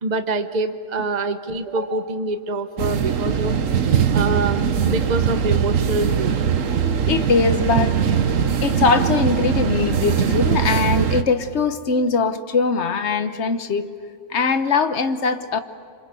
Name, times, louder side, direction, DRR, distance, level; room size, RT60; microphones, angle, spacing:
voice 1, 0.0-3.6 4.1-6.3, right 2 dB, 35° right, 8 dB, 1.1 m, -25 dB
sound 1, 2.8-11.2, right 7 dB, 85° right, 1.4 m, -21 dB
voice 2, 6.6-8.0 8.6-13.9 14.3-15.6, left 4 dB, 60° left, 10 dB, 1.4 m, -21 dB
27.5 x 25.5 x 8.2 m, 2.3 s
omnidirectional pair, 1.3 m